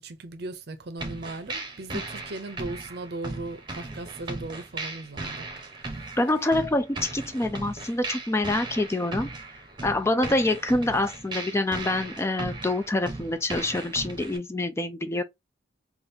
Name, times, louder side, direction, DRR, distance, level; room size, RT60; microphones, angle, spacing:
voice 1, 0.0-5.5, right 2 dB, 55° right, 0.6 m, -37 dB
sound 1, 1.0-14.4, right 2 dB, 25° right, 0.9 m, -37 dB
voice 2, 6.2-9.3 9.8-15.2, left 2 dB, 15° left, 0.3 m, -26 dB
5.2 x 2.4 x 2.7 m
head